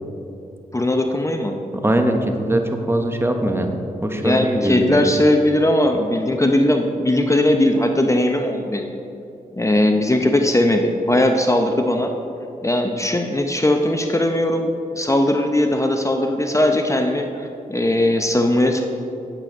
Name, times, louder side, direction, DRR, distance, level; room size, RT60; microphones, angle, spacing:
voice 1, 0.7-1.5 4.2-8.9 9.6-12.1 12.6-14.7 15.0-18.8, left 1 dB, 20° left, 4 dB, 0.8 m, -19 dB
voice 2, 1.8-3.8 4.0-5.1, right 1 dB, 15° right, 4 dB, 1.1 m, -21 dB
9.0 x 8.3 x 5.4 m, 2.8 s
cardioid pair, 55°, 15 cm